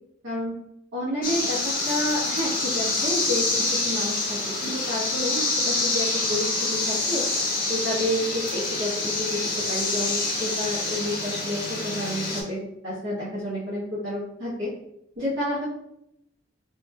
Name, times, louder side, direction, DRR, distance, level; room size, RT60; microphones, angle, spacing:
voice 1, 0.9-3.4 3.7-7.2 7.7-8.9 9.2-9.4 9.7-14.7 15.2-15.6, left 1 dB, 80° right, -8 dB, 1.1 m, -29 dB
sound 1, 1.2-12.4, left 3 dB, 50° left, 0.6 m, -27 dB
3.1 x 2.8 x 2.3 m, 0.79 s
head